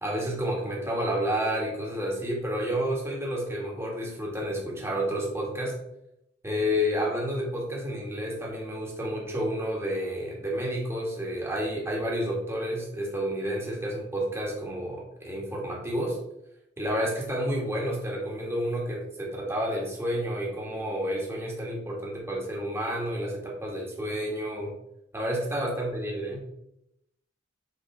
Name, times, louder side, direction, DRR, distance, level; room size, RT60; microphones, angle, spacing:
voice 1, 0.0-5.8 6.4-16.2 16.8-24.7 25.1-26.4, equal, 15° right, -2 dB, 1.9 m, -30 dB
7.7 x 4.8 x 3.6 m, 0.82 s
head